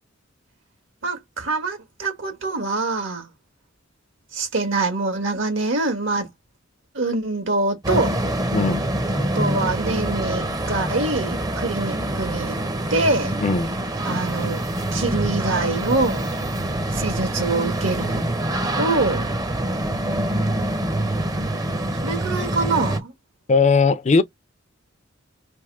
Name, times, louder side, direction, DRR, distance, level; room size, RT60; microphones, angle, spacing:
voice 1, 1.0-3.3 4.3-6.3 6.9-8.2 9.1-12.6 12.9-13.3 14.0-14.6 14.9-16.4 16.9-18.3 18.8-19.4 22.0-23.1, right 3 dB, 70° right, 1.7 m, -25 dB
sound 1, 7.8-23.0, right 1 dB, 20° right, 0.7 m, -25 dB
voice 2, 8.5-8.8 13.4-13.7 23.5-24.2, left 4 dB, 35° left, 0.5 m, -18 dB
3.5 x 3.0 x 4.7 m
head